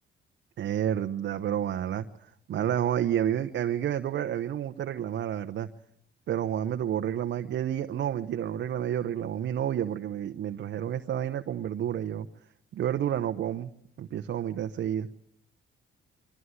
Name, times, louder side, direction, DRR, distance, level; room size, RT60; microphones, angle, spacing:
voice 1, 0.6-5.7 6.3-12.3 12.7-13.7 14.0-15.1, right 10 dB, 65° right, 0.9 m, -30 dB
24.0 x 13.0 x 9.6 m
cardioid pair, 90°, 20 cm